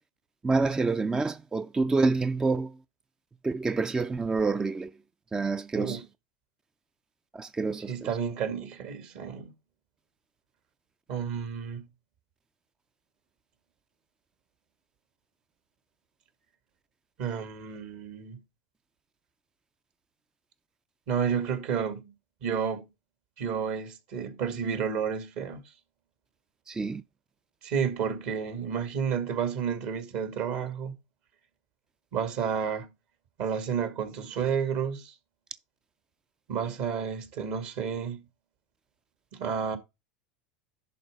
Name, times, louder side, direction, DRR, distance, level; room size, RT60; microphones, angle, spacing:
voice 1, 0.4-2.8 3.4-4.9 5.3-6.0 7.3-8.2 26.7-27.0, right 3 dB, 15° right, 0.4 m, -27 dB
voice 2, 7.9-9.5 11.1-11.9 17.2-18.4 21.1-22.1 22.4-22.9 23.4-25.6 27.6-30.9 32.1-32.9 33.4-35.1 36.5-38.2 39.3-39.8, right 7 dB, 60° right, 2.1 m, -31 dB
11.0 x 3.8 x 5.3 m
hypercardioid pair, 95°, 5 cm